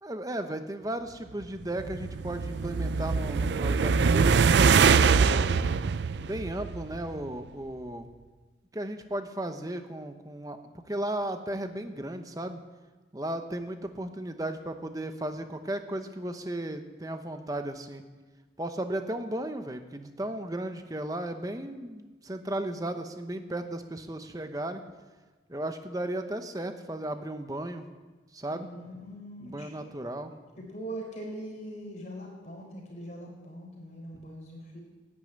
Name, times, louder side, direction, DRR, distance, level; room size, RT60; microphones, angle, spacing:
voice 1, 0.0-5.7 6.2-8.1 8.7-10.6 10.9-12.6 13.1-18.0 18.6-24.8 25.5-27.9 28.3-28.7 29.4-30.3 34.1-34.2, right 1 dB, 20° right, 8 dB, 0.9 m, -35 dB
sound 1, 1.6-7.1, right 5 dB, 70° right, 0.4 m, -23 dB
voice 2, 28.5-29.9 30.6-34.8, right 1 dB, 40° left, -1 dB, 4.3 m, -42 dB
11.0 x 9.9 x 8.8 m, 1.3 s
head